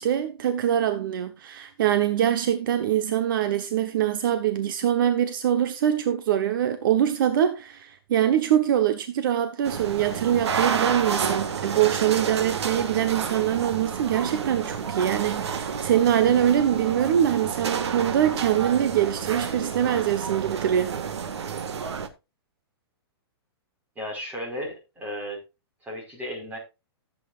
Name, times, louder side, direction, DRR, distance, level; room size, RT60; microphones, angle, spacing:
voice 1, 0.0-20.9, right 10 dB, 50° right, 1.2 m, -23 dB
sound 1, 9.6-22.1, right 6 dB, 90° right, 1.8 m, -30 dB
voice 2, 23.9-25.4 25.8-26.6, equal, 10° right, 5.0 m, -34 dB
15.0 x 8.5 x 2.5 m
hypercardioid pair, 165°, 14 cm